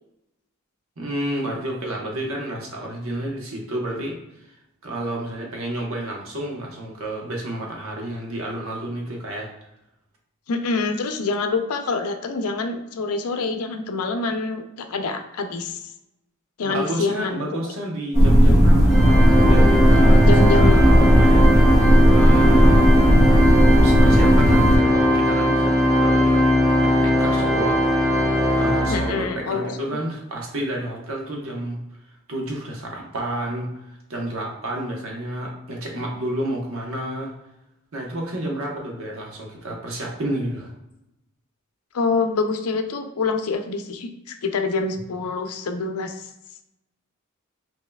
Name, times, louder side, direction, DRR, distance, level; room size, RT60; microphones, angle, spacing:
voice 1, 1.0-4.2 4.8-9.5 16.6-19.1 19.4-21.6 22.1-22.9 23.8-28.2 28.5-31.8 32.3-37.3 37.9-40.7, right 1 dB, 70° right, 0 dB, 1.0 m, -30 dB
voice 2, 10.5-15.8 16.6-17.5 20.3-20.8 28.9-29.8 41.9-46.3, left 4 dB, 90° left, 7 dB, 0.5 m, -26 dB
sound 1, 18.1-24.8, equal, 30° right, 1.3 m, -14 dB
Organ, 18.9-29.5, left 1 dB, ahead, 1.4 m, -20 dB
5.5 x 2.8 x 2.2 m, 0.89 s
head